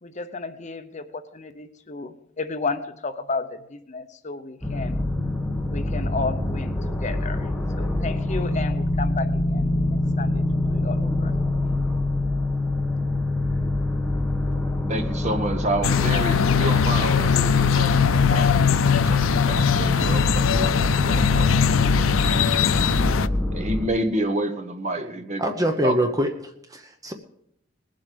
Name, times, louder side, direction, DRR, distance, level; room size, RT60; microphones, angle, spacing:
voice 1, 0.0-5.0 5.7-6.7 7.0-7.5 7.8-9.7 10.2-10.4 10.7-11.3, left 4 dB, 35° left, 0.8 m, -32 dB
sound 1, 4.6-23.9, left 1 dB, 5° left, 1.2 m, -25 dB
voice 2, 14.9-21.5 23.5-26.1, right 1 dB, 35° right, 1.3 m, -29 dB
sound 2, 15.8-23.3, left 7 dB, 80° left, 0.5 m, -21 dB
voice 3, 25.4-27.1, right 1 dB, 15° right, 0.8 m, -25 dB
20.5 x 7.7 x 5.2 m
head